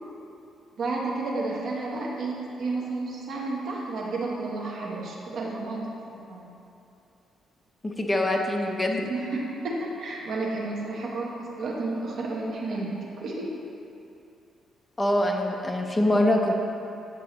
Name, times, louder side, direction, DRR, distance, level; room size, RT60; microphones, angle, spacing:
voice 1, 0.8-6.5 9.1-13.5, right 3 dB, 55° right, -3 dB, 1.0 m, -31 dB
voice 2, 7.8-9.1 15.0-16.5, left 1 dB, 15° left, 1 dB, 0.6 m, -24 dB
8.4 x 6.1 x 3.0 m, 2.7 s
cardioid pair, 140°, 0 cm